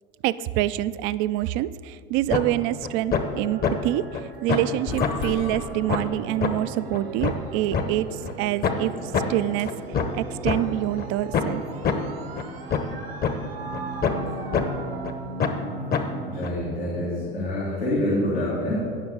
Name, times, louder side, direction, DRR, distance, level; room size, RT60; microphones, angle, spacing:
voice 1, 0.2-4.0 4.4-9.7 10.1-11.6, right 14 dB, 45° right, 16 dB, 0.4 m, -26 dB
sound 1, 2.3-2.4 2.8-3.2 3.6-3.7 4.1-4.2 4.5-4.7 5.0-5.1 5.5-5.6 5.9-6.0 6.4-6.5 6.9-7.8 8.2-8.3 8.6-8.8 9.1-9.2 9.6-10.6 11.0-11.1 11.3-11.5 11.8-12.0 12.4-12.5 12.7-12.9 13.2-13.3 13.7-14.3 14.5-14.6 15.0-15.1 15.4-15.6 15.9-16.0 16.4-16.5, left 6 dB, 30° left, 1.0 m, -24 dB
sound 2, 3.2-16.8, right 3 dB, 80° right, 1.1 m, -38 dB
sound 3, 4.2-11.7, left 5 dB, 55° left, 1.2 m, -40 dB
voice 2, 16.3-18.8, left 1 dB, 90° left, -9 dB, 2.6 m, -26 dB
17.5 x 6.0 x 3.8 m, 2.4 s
figure-of-eight pair, 75°, 29 cm